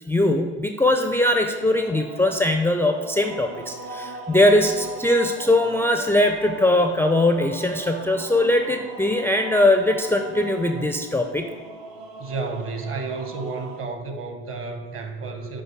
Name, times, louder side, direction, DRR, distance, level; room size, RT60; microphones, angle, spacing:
voice 1, 0.1-11.5, left 1 dB, 5° left, 4 dB, 0.4 m, -21 dB
sound 1, 1.2-13.8, right 3 dB, 60° right, 0.9 m, -38 dB
voice 2, 12.2-15.6, right 4 dB, 40° right, 5 dB, 1.2 m, -31 dB
8.9 x 3.2 x 4.6 m, 1.4 s
hypercardioid pair, 70°, 35 cm